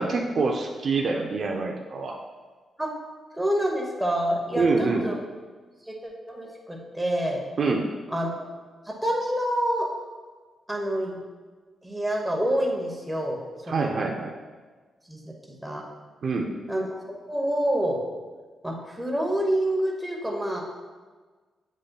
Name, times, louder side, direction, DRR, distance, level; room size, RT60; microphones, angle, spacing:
voice 1, 0.0-2.2 4.6-5.0 7.6-7.9 13.7-14.3 16.2-16.5, right 3 dB, 45° right, 1 dB, 0.5 m, -25 dB
voice 2, 3.3-5.2 5.9-7.4 8.1-8.5 8.8-9.9 10.7-11.2 11.8-13.4 13.7-14.1 15.1-15.3 15.6-15.8 16.7-17.0 17.3-18.0 18.6-20.6, right 1 dB, 5° right, -2 dB, 0.9 m, -27 dB
8.5 x 5.2 x 2.3 m, 1.4 s
wide cardioid pair, 155°, 0 cm